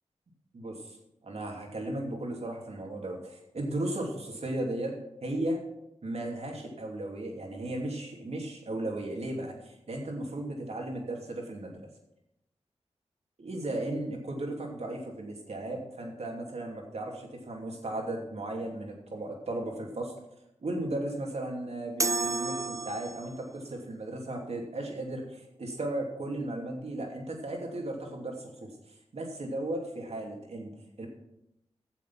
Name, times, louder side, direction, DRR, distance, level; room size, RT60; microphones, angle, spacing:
voice 1, 0.5-1.0 1.2-4.9 5.2-5.6 6.0-11.8 13.4-20.1 20.6-28.7 29.1-31.1, right 1 dB, 60° right, 1 dB, 2.9 m, -35 dB
sound 1, 22.0-23.5, right 3 dB, 25° right, 0.6 m, -31 dB
12.5 x 7.4 x 5.9 m, 0.86 s
cardioid pair, 40°, 12 cm